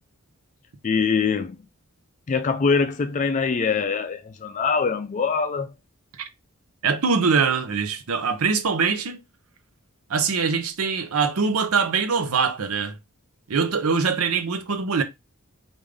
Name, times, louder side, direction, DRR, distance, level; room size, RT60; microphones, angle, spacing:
voice 1, 0.8-1.6 2.3-5.7, left 5 dB, 35° left, 0.4 m, -23 dB
voice 2, 6.8-9.2 10.1-13.0 13.5-15.0, right 5 dB, 85° right, 0.6 m, -23 dB
3.5 x 2.6 x 3.3 m
head